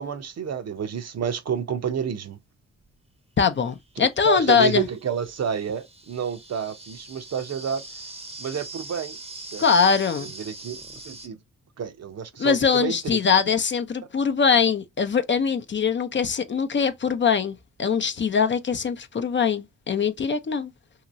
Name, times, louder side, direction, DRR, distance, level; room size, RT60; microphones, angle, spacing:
voice 1, 0.0-2.4 4.2-7.8 8.4-9.2 9.5-9.6 10.2-11.4 11.8-13.2, right 7 dB, 50° right, 0.7 m, -29 dB
sound 1, 2.8-2.9 3.8-11.3, right 2 dB, 20° right, 0.8 m, -42 dB
voice 2, 3.4-4.9 9.6-10.3 12.4-20.7, left 6 dB, 35° left, 0.6 m, -22 dB
2.8 x 2.8 x 2.5 m
supercardioid pair, 65°, 33 cm